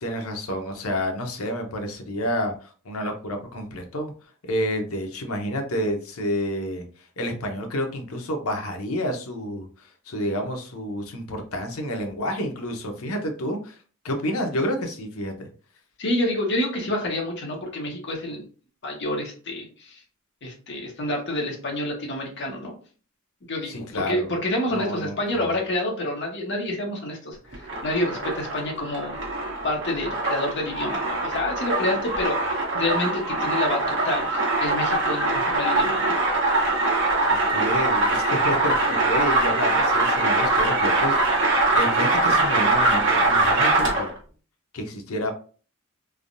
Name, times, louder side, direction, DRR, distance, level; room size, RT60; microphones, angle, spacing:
voice 1, 0.0-4.1 4.4-13.8 14.0-15.5 23.7-24.4 24.7-25.5 37.3-41.5 41.8-44.1 44.7-45.3, equal, 80° left, 4 dB, 0.7 m, -29 dB
voice 2, 16.0-18.4 18.8-20.0 20.4-22.7 23.5-29.1 29.6-36.1, left 1 dB, 55° left, 0 dB, 0.9 m, -28 dB
sound 1, 27.5-44.2, right 2 dB, 60° right, 1.0 m, -22 dB
3.4 x 2.2 x 2.5 m, 0.40 s
head